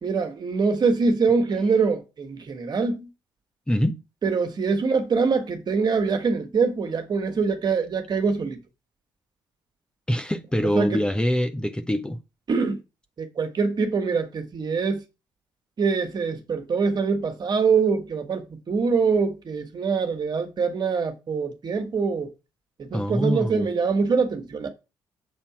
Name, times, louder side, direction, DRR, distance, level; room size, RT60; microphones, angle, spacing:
voice 1, 0.0-3.1 4.2-8.6 10.7-11.0 12.5-12.8 13.2-15.0 15.8-22.3 22.8-24.7, right 5 dB, 40° right, 1.9 m, -24 dB
voice 2, 3.7-4.0 10.1-12.2 22.9-23.7, equal, 10° left, 1.1 m, -24 dB
7.8 x 4.3 x 5.9 m
figure-of-eight pair, 45°, 11 cm